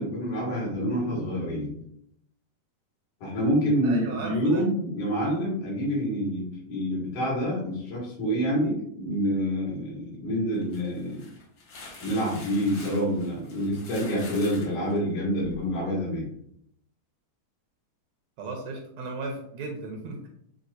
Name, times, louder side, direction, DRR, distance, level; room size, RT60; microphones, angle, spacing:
voice 1, 0.0-1.8 3.2-11.2 12.0-16.3, equal, 85° left, -6 dB, 3.3 m, -27 dB
voice 2, 3.8-4.6 18.4-20.3, right 3 dB, 75° right, 1 dB, 1.7 m, -36 dB
sound 1, 10.5-15.6, left 3 dB, 55° left, 1.6 m, -46 dB
7.3 x 2.6 x 2.6 m, 0.72 s
omnidirectional pair, 3.6 m